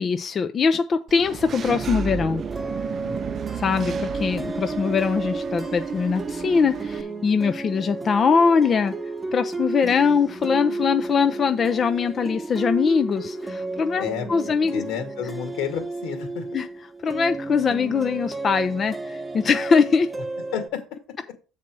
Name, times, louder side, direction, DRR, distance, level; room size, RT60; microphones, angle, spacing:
voice 1, 0.0-2.5 3.6-8.9 9.3-14.8 16.5-16.7 17.0-20.1, left 5 dB, 35° left, 0.5 m, -22 dB
Engine / Mechanisms, 1.1-7.0, right 6 dB, 35° right, 0.4 m, -32 dB
sound 1, 1.5-20.7, right 3 dB, 10° right, 1.0 m, -33 dB
voice 2, 3.0-3.5 14.0-14.3 14.7-16.5 20.5-20.8, left 8 dB, 80° left, 2.3 m, -31 dB
7.4 x 4.2 x 6.1 m
cardioid pair, 120°, 0 cm